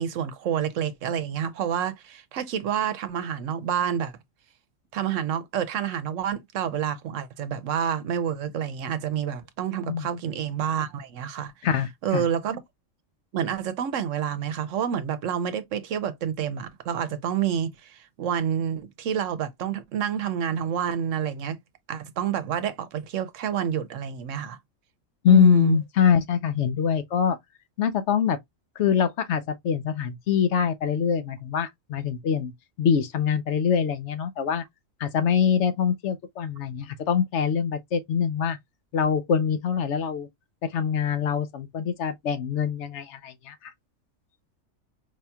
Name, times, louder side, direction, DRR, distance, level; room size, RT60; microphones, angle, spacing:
voice 1, 0.0-4.1 4.9-11.5 12.0-12.6 13.3-21.6 21.9-24.6 25.3-25.8, right 9 dB, 70° right, 1.0 m, -28 dB
voice 2, 11.6-12.3 25.2-27.4 27.8-28.4 28.8-32.5 32.8-34.6 35.0-38.6 38.9-40.3 40.6-43.7, left 7 dB, 65° left, 0.9 m, -24 dB
4.9 x 2.8 x 2.2 m
omnidirectional pair, 1.4 m